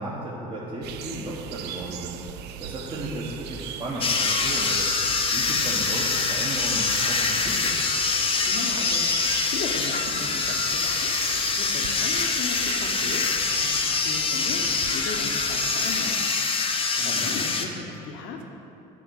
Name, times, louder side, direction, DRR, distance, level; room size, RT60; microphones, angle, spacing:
voice 1, 0.0-2.1 2.6-7.9 17.0-17.4, right 1 dB, 30° right, -7 dB, 1.5 m, -35 dB
sound 1, 0.8-16.1, right 10 dB, 65° right, 0.5 m, -38 dB
sound 2, 4.0-17.7, left 4 dB, 30° left, 0.8 m, -25 dB
voice 2, 8.4-13.8 14.0-16.2 16.9-18.4, left 4 dB, 75° left, 3 dB, 1.1 m, -37 dB
9.8 x 4.5 x 6.5 m, 3.0 s
supercardioid pair, 95°, 19 cm